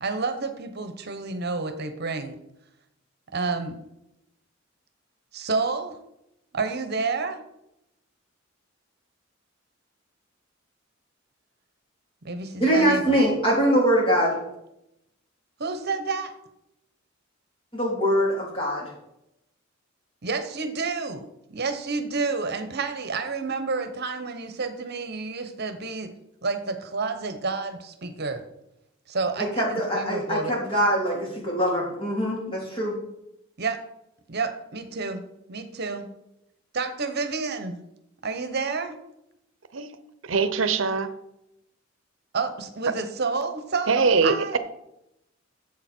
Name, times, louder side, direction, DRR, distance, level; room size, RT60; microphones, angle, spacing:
voice 1, 0.0-2.4 3.3-3.8 5.3-6.0 6.5-7.4 12.2-13.2 15.6-16.3 20.2-26.1 26.4-28.4 29.1-30.5 33.6-33.8 34.3-35.2 35.5-36.1 36.7-37.8 38.2-38.9 42.3-44.6, right 4 dB, 55° right, 9 dB, 1.0 m, -29 dB
voice 2, 12.6-14.4 17.7-18.9 29.4-32.9, equal, 25° left, -2 dB, 3.4 m, -23 dB
voice 3, 40.3-41.1 43.9-44.6, right 4 dB, 75° right, 12 dB, 0.7 m, -22 dB
12.0 x 7.5 x 4.4 m, 0.85 s
head